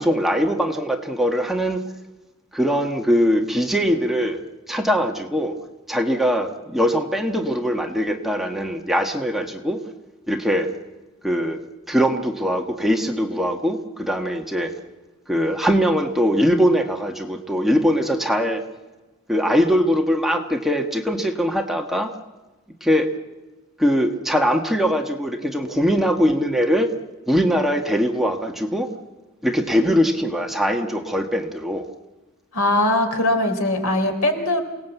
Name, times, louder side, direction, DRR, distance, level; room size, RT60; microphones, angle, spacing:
voice 1, 0.0-1.8 2.5-4.4 4.7-5.5 5.9-9.8 10.3-10.7 11.2-11.6 11.9-14.7 15.3-18.6 19.3-22.1 22.8-23.1 23.8-26.9 27.3-28.9 29.4-31.9, equal, ahead, 2 dB, 1.4 m, -21 dB
voice 2, 32.5-34.6, left 1 dB, 90° left, 5 dB, 3.8 m, -20 dB
28.0 x 18.5 x 8.2 m, 1.2 s
head